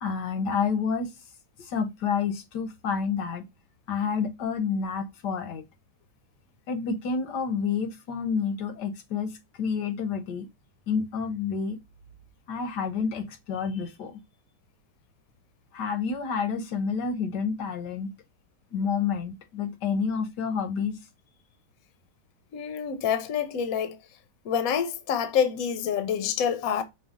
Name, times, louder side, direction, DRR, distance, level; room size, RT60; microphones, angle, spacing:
voice 1, 0.0-1.1 1.6-3.4 3.9-5.6 6.7-10.5 10.9-11.8 12.5-14.2 15.7-18.1 18.7-21.0, left 6 dB, 85° left, 1.5 m, -29 dB
voice 2, 22.5-24.0 24.4-26.8, left 8 dB, 65° left, 1.1 m, -27 dB
5.4 x 2.4 x 3.6 m
omnidirectional pair, 1.8 m